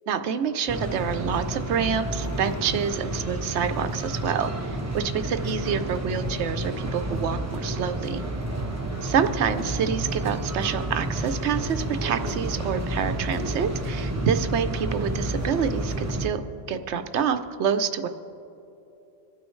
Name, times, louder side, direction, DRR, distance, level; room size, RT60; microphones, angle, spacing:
voice 1, 0.1-4.5 4.9-8.2 9.0-18.1, right 7 dB, 80° right, 9 dB, 0.9 m, -27 dB
sound 1, 0.7-16.3, right 1 dB, 15° right, 0.9 m, -30 dB
26.5 x 9.3 x 3.2 m, 2.9 s
omnidirectional pair, 1.1 m